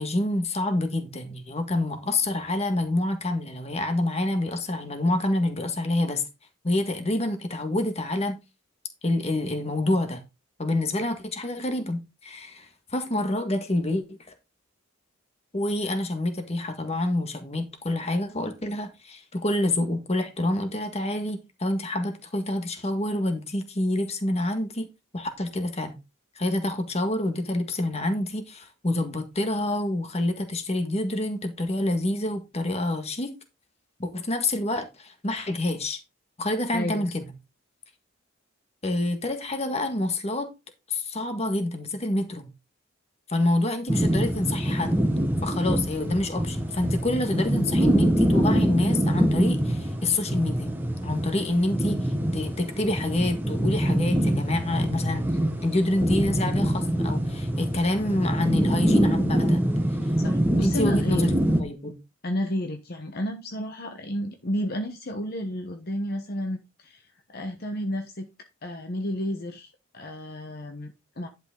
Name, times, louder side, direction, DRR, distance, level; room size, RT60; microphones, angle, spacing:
voice 1, 0.0-6.2 6.6-8.4 9.0-10.2 10.6-14.2 15.5-24.9 25.1-26.0 26.4-33.3 34.0-36.0 36.4-37.2 38.8-40.5 40.9-42.5 43.3-45.0 45.4-50.7 51.0-55.3 55.6-59.7 60.6-61.3 61.6-62.0, left 1 dB, 30° left, 1.8 m, -27 dB
voice 2, 36.7-37.2 60.2-61.3 62.2-68.3 68.6-71.3, left 1 dB, 50° left, 1.1 m, -32 dB
sound 1, 43.9-61.6, equal, 10° right, 1.4 m, -25 dB
11.0 x 6.0 x 3.8 m
head